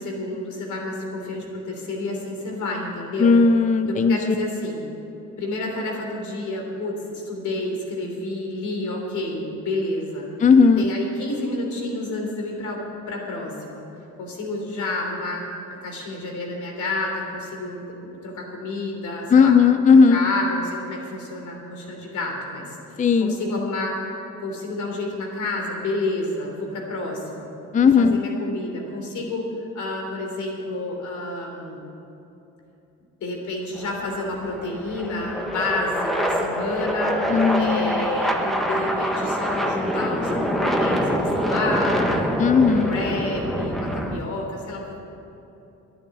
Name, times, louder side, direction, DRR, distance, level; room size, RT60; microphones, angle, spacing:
voice 1, 0.0-3.4 3.9-4.8 5.4-10.3 10.8-13.8 14.2-15.4 15.7-19.6 19.9-27.5 28.0-31.8 33.2-37.1 37.5-42.4 42.7-45.0, left 2 dB, 75° left, 0 dB, 3.4 m, -30 dB
voice 2, 3.2-4.3 10.4-10.9 19.3-20.2 23.0-23.4 27.7-28.2 37.3-38.1 42.4-43.0, left 5 dB, 25° left, 9 dB, 0.5 m, -16 dB
sound 1, 33.8-44.2, equal, ahead, 1.4 m, -25 dB
11.0 x 10.0 x 9.3 m, 2.9 s
cardioid pair, 90°, 30 cm